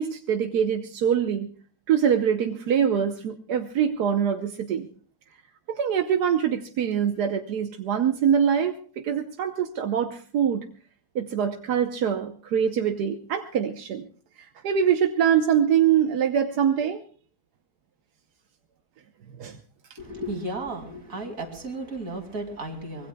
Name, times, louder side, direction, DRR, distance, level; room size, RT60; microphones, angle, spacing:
voice 1, 0.0-1.5 1.9-4.9 5.7-10.6 11.1-14.0 14.4-17.0 19.4-19.6, right 8 dB, 85° right, 6 dB, 1.5 m, -24 dB
voice 2, 20.0-23.1, right 1 dB, 60° right, 4 dB, 3.1 m, -34 dB
24.5 x 20.5 x 2.3 m, 0.43 s
omnidirectional pair, 1.7 m